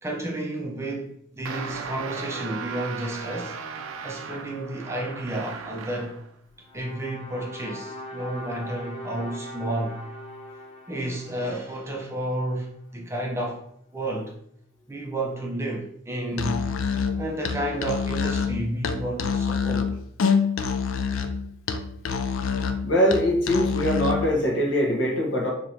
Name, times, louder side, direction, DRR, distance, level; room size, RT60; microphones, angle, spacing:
voice 1, 0.0-3.6 4.0-6.2 6.7-10.0 10.9-13.6 13.9-14.3 14.9-16.6 17.2-19.9, right 1 dB, 15° right, 0.4 m, -31 dB
sound 1, 1.4-6.3, right 5 dB, 90° right, 0.4 m, -36 dB
sound 2, 6.6-12.8, equal, 30° left, 0.7 m, -41 dB
Musical instrument, 16.3-24.3, left 6 dB, 85° left, 0.4 m, -26 dB
voice 2, 22.8-25.5, equal, 65° left, 1.0 m, -22 dB
2.8 x 2.6 x 4.3 m
head